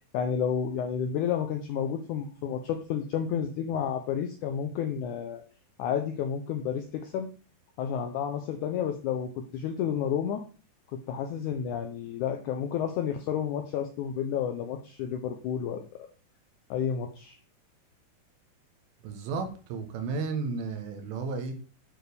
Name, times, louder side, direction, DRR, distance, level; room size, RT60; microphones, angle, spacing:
voice 1, 0.1-5.4 5.8-7.3 7.8-10.4 10.9-16.1 16.7-17.4, left 8 dB, 85° left, 5 dB, 1.7 m, -31 dB
voice 2, 19.0-21.5, right 4 dB, 80° right, 5 dB, 2.8 m, -33 dB
8.9 x 4.6 x 3.4 m, 0.37 s
omnidirectional pair, 4.2 m